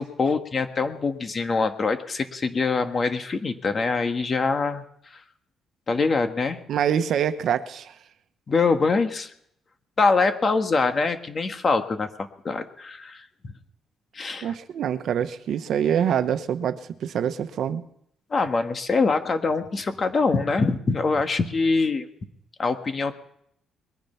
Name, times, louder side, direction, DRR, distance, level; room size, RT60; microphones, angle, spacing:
voice 1, 0.0-4.8 5.9-6.6 8.5-9.3 10.0-13.2 14.1-14.5 18.3-22.1 22.6-23.1, left 4 dB, 40° left, 7 dB, 1.5 m, -24 dB
voice 2, 6.7-7.9 14.4-17.8, right 9 dB, 70° right, 10 dB, 1.0 m, -25 dB
21.0 x 10.5 x 5.7 m, 0.72 s
cardioid pair, 90°, 0 cm